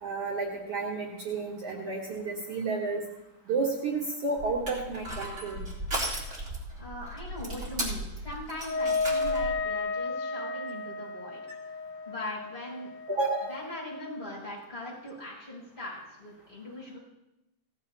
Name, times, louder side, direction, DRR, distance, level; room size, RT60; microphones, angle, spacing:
voice 1, 0.0-3.0 3.5-5.6 13.1-13.5, right 3 dB, 80° right, -2 dB, 1.3 m, -31 dB
Crushing, 4.4-9.6, right 1 dB, 25° right, 2.3 m, -36 dB
voice 2, 6.8-11.4 12.0-12.9 13.5-17.0, left 1 dB, 15° left, -7 dB, 6.1 m, -40 dB
Wind instrument woodwind instrument, 8.6-14.3, left 3 dB, 75° left, 2.5 m, -33 dB
17.5 x 14.5 x 2.8 m, 0.90 s
omnidirectional pair, 4.8 m